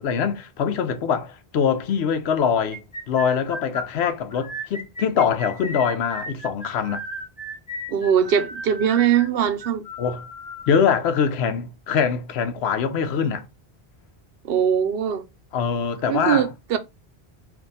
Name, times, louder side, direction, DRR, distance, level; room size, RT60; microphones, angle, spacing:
voice 1, 0.0-7.0 10.0-10.2 10.7-13.5 15.5-16.5, left 7 dB, 85° left, 0.9 m, -23 dB
sound 1, 2.7-10.7, equal, 10° left, 1.2 m, -35 dB
voice 2, 7.9-9.8 14.4-15.2 16.1-16.8, right 8 dB, 70° right, 0.8 m, -21 dB
3.5 x 2.5 x 4.0 m
omnidirectional pair, 1.1 m